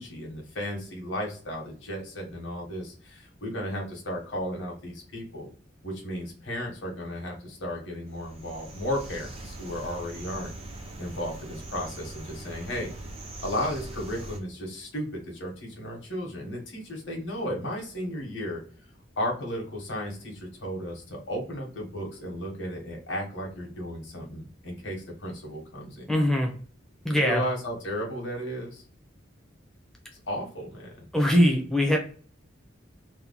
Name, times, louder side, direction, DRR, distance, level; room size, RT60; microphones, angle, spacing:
voice 1, 0.0-5.5 5.8-10.5 11.0-12.9 13.4-18.6 19.2-26.1 27.1-28.8 30.3-31.1, equal, 70° left, -1 dB, 1.2 m, -34 dB
sound 1, 8.1-14.4, right 2 dB, 30° right, 0.6 m, -41 dB
voice 2, 26.1-26.5 27.0-27.4 31.1-32.0, equal, ahead, 1 dB, 0.7 m, -21 dB
2.9 x 2.3 x 3.7 m, 0.43 s
head